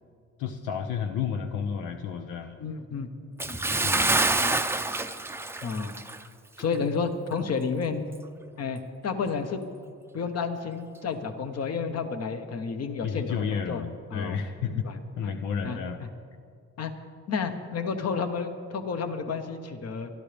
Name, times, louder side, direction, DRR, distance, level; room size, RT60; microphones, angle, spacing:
voice 1, 0.4-2.6 3.8-4.4 13.0-14.9 15.2-16.0, left 7 dB, 90° left, 6 dB, 0.8 m, -31 dB
voice 2, 2.6-3.6 4.4-4.5 5.6-5.9 6.6-8.1 8.6-9.6 10.1-13.8 14.1-14.4 14.8-15.3 15.6-15.8 16.8-16.9 17.3-20.1, left 5 dB, 55° left, 7 dB, 1.3 m, -31 dB
Bathtub (filling or washing) / Splash splatter, 3.4-6.3 6.6-6.8 7.3-7.4, right 2 dB, 10° right, 0.5 m, -27 dB
23.0 x 12.0 x 3.5 m, 2.3 s
cardioid pair, 90°, 30 cm